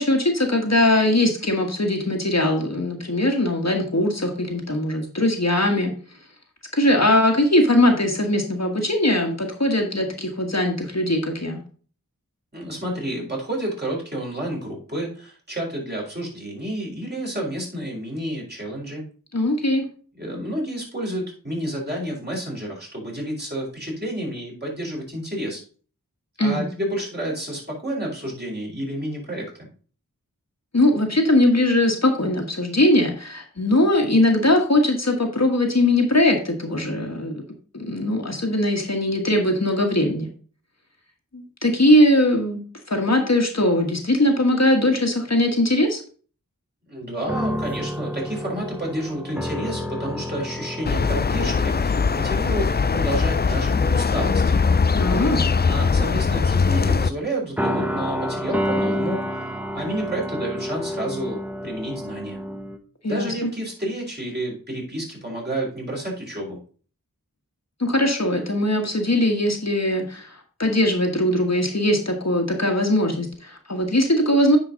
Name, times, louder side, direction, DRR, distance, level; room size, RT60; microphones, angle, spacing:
voice 1, 0.0-5.9 6.7-11.6 19.3-19.8 26.4-26.7 30.7-37.3 37.7-40.3 41.3-42.6 42.9-46.0 55.0-55.4 63.0-63.5 67.8-74.6, left 1 dB, 50° left, 2 dB, 1.5 m, -20 dB
voice 2, 12.5-19.0 20.2-25.6 26.4-29.7 46.9-54.6 55.7-59.5 59.7-61.4 61.6-62.4 63.1-66.6, right 1 dB, 30° right, -3 dB, 4.3 m, -30 dB
sound 1, 47.2-53.4 53.7-54.0 54.9-55.7 57.6-62.8, equal, 5° right, 0.9 m, -30 dB
sound 2, 50.8-57.1, left 5 dB, 30° left, 0.4 m, -21 dB
9.8 x 4.5 x 3.9 m, 0.41 s
wide cardioid pair, 40°, 33 cm